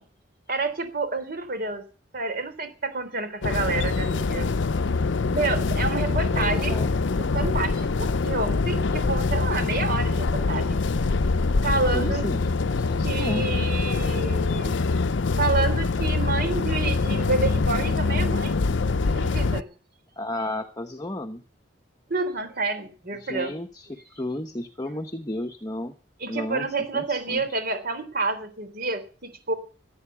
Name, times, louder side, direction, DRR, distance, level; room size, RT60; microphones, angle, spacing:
voice 1, 0.5-1.8 2.1-4.5 5.3-6.8 7.1-10.8 11.6-12.2 13.0-14.8 15.4-18.6 19.1-19.7 22.1-23.6 26.2-29.5, right 3 dB, 55° right, 10 dB, 3.6 m, -29 dB
sound 1, 3.4-19.6, left 3 dB, 75° left, 0.6 m, -24 dB
voice 2, 6.1-6.9 11.9-13.4 20.2-21.4 23.2-25.9 26.3-26.7 26.9-27.4, left 1 dB, 20° left, 5 dB, 1.0 m, -33 dB
16.0 x 9.4 x 7.1 m, 0.38 s
head